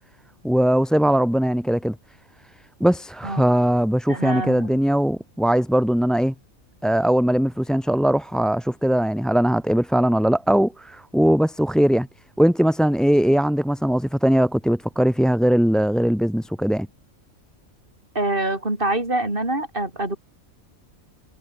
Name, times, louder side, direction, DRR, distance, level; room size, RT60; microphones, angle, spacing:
voice 1, 0.4-2.0 2.8-6.3 6.8-12.1 12.4-16.9, equal, ahead, 1.9 m, -20 dB
voice 2, 4.1-4.7 18.1-20.2, right 1 dB, 40° right, 6.0 m, -25 dB
omnidirectional pair, 1.4 m